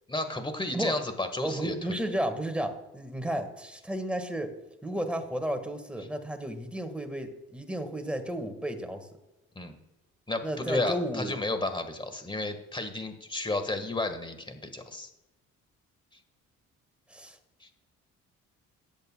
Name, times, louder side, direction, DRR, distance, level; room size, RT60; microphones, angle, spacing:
voice 1, 0.1-2.0 9.5-9.7 10.3-15.1 17.6-17.7, left 2 dB, 15° left, 8 dB, 1.5 m, -32 dB
voice 2, 1.4-4.5 4.8-9.1 10.4-11.4 17.1-17.4, right 1 dB, 5° right, 6 dB, 1.6 m, -33 dB
18.5 x 8.0 x 2.3 m, 0.96 s
cardioid pair, 90°, 30 cm